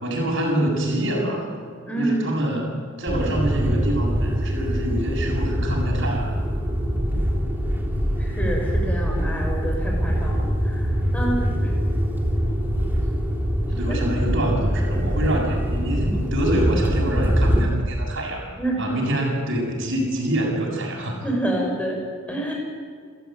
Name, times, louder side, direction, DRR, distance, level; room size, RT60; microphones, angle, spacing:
voice 1, 0.0-1.5 2.0-6.3 13.7-18.5 18.8-21.2, right 1 dB, 60° right, -2 dB, 7.3 m, -26 dB
voice 2, 1.8-2.3 8.2-10.9 11.1-11.7 16.0-16.1 18.6-18.8 21.2-22.0 22.3-22.5, right 1 dB, 5° left, 0 dB, 5.9 m, -27 dB
sound 1, 3.1-17.7, equal, 10° right, 3.1 m, -23 dB
27.5 x 15.0 x 9.3 m, 2.1 s
head